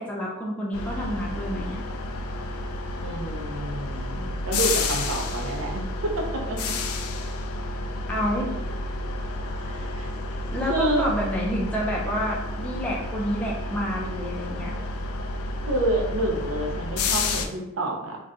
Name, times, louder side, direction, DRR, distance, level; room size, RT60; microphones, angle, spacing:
voice 1, 0.0-1.8 8.1-8.5 10.5-14.7, equal, 5° left, -4 dB, 0.4 m, -28 dB
sound 1, 0.7-17.5, left 2 dB, 75° left, 0.3 m, -30 dB
voice 2, 3.0-6.6 9.6-10.1 10.6-11.1 15.6-18.2, right 1 dB, 65° right, 0 dB, 0.6 m, -28 dB
2.5 x 2.2 x 3.7 m, 0.97 s
head